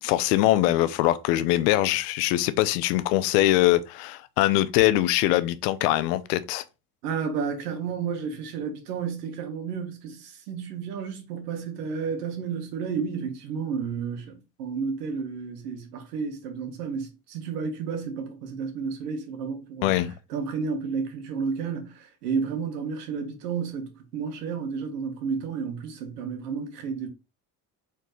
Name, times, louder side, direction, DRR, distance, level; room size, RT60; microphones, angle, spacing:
voice 1, 0.0-6.6 19.8-20.1, left 15 dB, 80° left, 0.7 m, -22 dB
voice 2, 7.0-27.1, right 5 dB, 85° right, 1.3 m, -32 dB
4.4 x 3.9 x 3.0 m
hypercardioid pair, 60°, 46 cm